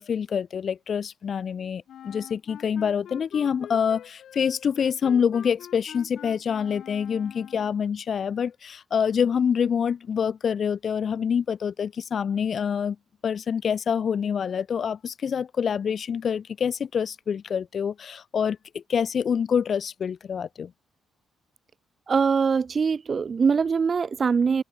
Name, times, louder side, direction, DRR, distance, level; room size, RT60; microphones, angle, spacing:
voice 1, 0.0-13.0 13.2-20.7, left 7 dB, 50° left, 2.0 m, -26 dB
Wind instrument woodwind instrument, 1.9-7.8, left 10 dB, 70° left, 3.9 m, -45 dB
voice 2, 22.1-24.6, right 5 dB, 40° right, 0.8 m, -22 dB
cardioid pair, 90°, 0 cm